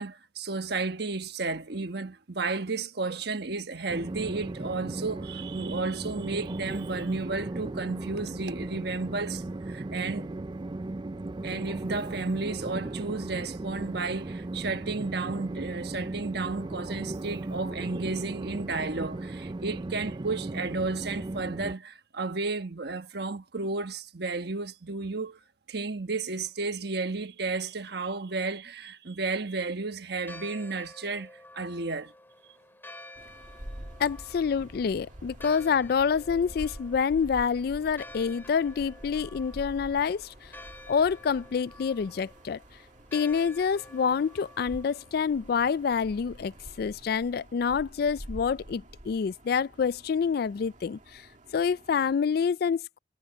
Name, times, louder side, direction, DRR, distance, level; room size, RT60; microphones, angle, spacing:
voice 1, 0.0-10.3 11.4-25.4 25.7-32.1, right 3 dB, 65° right, 1.3 m, -33 dB
Train, 3.9-21.7, right 2 dB, 25° right, 0.4 m, -36 dB
Church bell, 30.1-46.8, left 1 dB, 10° left, 7.4 m, -51 dB
sound 1, 33.1-52.2, right 1 dB, 45° right, 2.3 m, -47 dB
voice 2, 34.0-40.3 40.9-42.6 43.1-46.5 46.8-51.2 51.5-53.0, left 6 dB, 55° left, 0.3 m, -27 dB
head